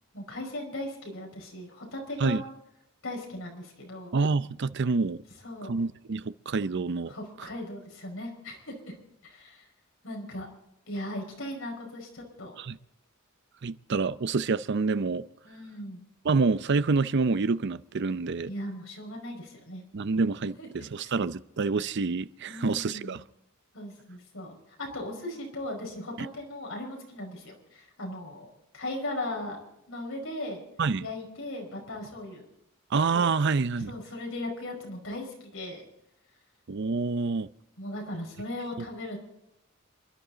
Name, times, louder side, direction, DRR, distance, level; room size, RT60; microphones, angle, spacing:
voice 1, 0.1-2.4 3.0-4.1 5.4-5.7 7.1-8.9 9.2-9.7 10.0-10.5 10.9-12.6 15.4-16.0 18.4-19.8 20.4-21.1 22.5-23.2 23.7-29.6 29.9-30.6 31.0-32.5 33.1-33.2 33.9-35.8 37.8-39.2, left 1 dB, 75° left, 5.3 m, -38 dB
voice 2, 4.1-5.2 5.7-7.1 12.6-12.8 13.6-15.2 16.2-18.5 19.9-23.2 30.8-31.1 32.9-33.9 36.7-37.5, right 4 dB, 55° right, 0.5 m, -27 dB
27.5 x 11.5 x 4.0 m
head